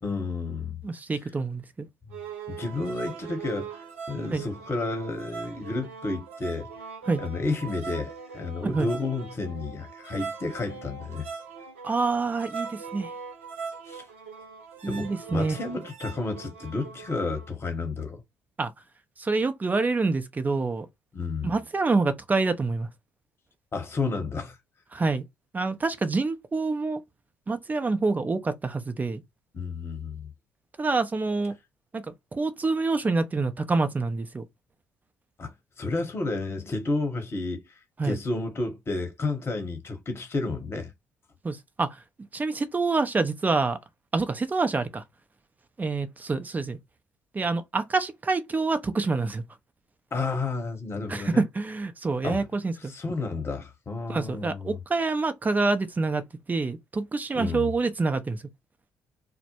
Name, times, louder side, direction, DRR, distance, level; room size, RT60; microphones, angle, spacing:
voice 1, 0.0-0.8 2.0-2.2 2.5-6.7 7.2-11.3 13.9-14.0 14.8-18.2 21.1-21.5 23.7-24.6 29.5-30.3 35.4-37.6 38.0-40.9 50.1-51.4 52.2-52.5 52.9-54.8 57.3-57.7, left 3 dB, 40° left, 1.0 m, -31 dB
voice 2, 0.8-1.9 4.3-4.4 7.1-7.2 8.6-8.9 11.8-13.1 14.8-15.6 18.6-18.7 19.2-20.9 21.4-22.9 24.9-25.2 25.5-27.0 27.5-29.2 30.8-31.5 31.9-32.0 32.3-34.4 38.0-38.2 41.4-41.9 42.3-43.8 44.1-45.0 45.8-46.8 47.3-49.4 51.1-52.9 54.1-58.4, right 3 dB, 25° right, 0.6 m, -27 dB
sound 1, 2.1-17.5, right 5 dB, 90° right, 0.5 m, -41 dB
2.1 x 2.1 x 2.8 m
hypercardioid pair, 50°, 7 cm